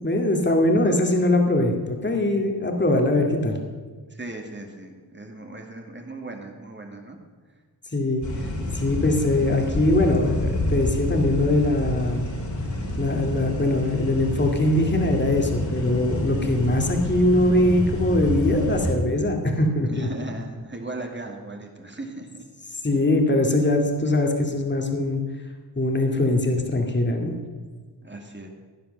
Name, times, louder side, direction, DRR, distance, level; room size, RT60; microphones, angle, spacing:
voice 1, 0.0-3.6 7.9-12.3 13.0-20.1 22.8-25.2 25.8-27.3, left 1 dB, 25° left, 2 dB, 2.3 m, -22 dB
voice 2, 4.1-7.2 19.9-22.4 28.0-28.5, right 2 dB, 25° right, 2 dB, 2.3 m, -37 dB
sound 1, 8.2-19.0, left 1 dB, 45° left, 3.1 m, -28 dB
16.0 x 10.5 x 6.8 m, 1.5 s
wide cardioid pair, 100°, 42 cm